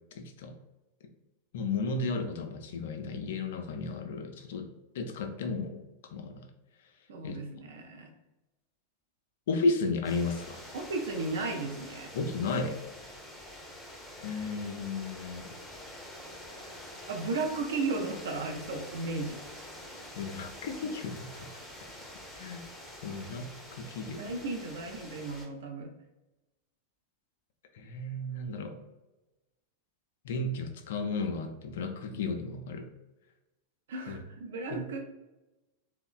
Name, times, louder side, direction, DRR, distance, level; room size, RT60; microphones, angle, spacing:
voice 1, 0.1-0.5 1.5-4.7 4.9-6.5 7.2-7.4 9.5-10.6 12.1-12.8 14.2-15.5 20.2-21.5 22.4-22.6 23.0-24.3 27.7-28.8 30.2-32.9 34.1-34.2 34.7-34.8, left 3 dB, 55° left, 5 dB, 0.3 m, -34 dB
voice 2, 7.1-8.1 10.7-12.1 17.1-19.4 24.1-25.9 33.9-35.0, right 3 dB, 60° right, 4 dB, 0.4 m, -35 dB
sound 1, 10.0-25.5, left 1 dB, 5° left, 0.5 m, -46 dB
2.9 x 2.1 x 2.3 m, 1.0 s
figure-of-eight pair, 90°, 0 cm